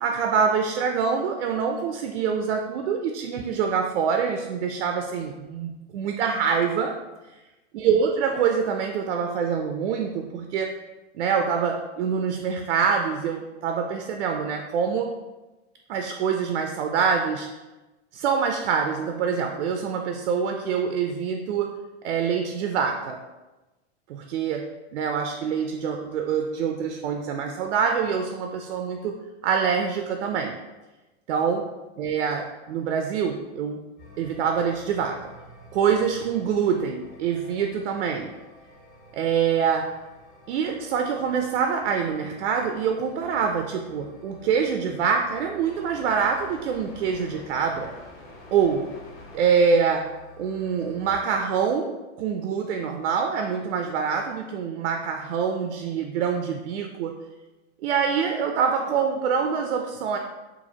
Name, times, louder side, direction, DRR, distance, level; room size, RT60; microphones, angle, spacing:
voice 1, 0.0-6.9 7.7-10.8 11.1-15.2 15.9-17.5 18.1-21.7 22.0-23.2 24.1-30.6 31.3-31.7 32.0-33.8 34.2-35.2 35.7-38.3 39.1-39.9 40.5-47.9 48.5-48.9 49.3-50.1 50.4-57.2 57.8-60.2, right 6 dB, 70° right, 4 dB, 0.5 m, -25 dB
sound 1, 34.0-51.1, left 1 dB, 25° left, 0.8 m, -48 dB
6.9 x 2.6 x 2.8 m, 1.1 s
supercardioid pair, 180°, 36 cm